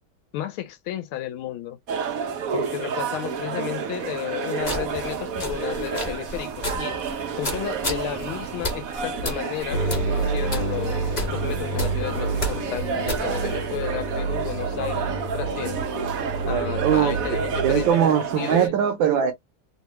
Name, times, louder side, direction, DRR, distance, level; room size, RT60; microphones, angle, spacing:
voice 1, 0.3-1.8 2.5-7.0 7.4-15.8 16.5-18.0 18.4-18.8, left 12 dB, 80° left, 1.5 m, -33 dB
sound 1, 1.9-18.7, right 6 dB, 90° right, 0.7 m, -30 dB
sound 2, 4.6-13.6, left 1 dB, 30° left, 0.9 m, -34 dB
sound 3, 9.7-17.9, right 3 dB, 50° left, 1.3 m, -29 dB
voice 2, 16.8-17.4 17.6-19.3, right 8 dB, 75° right, 1.2 m, -21 dB
3.5 x 2.3 x 3.0 m
omnidirectional pair, 2.4 m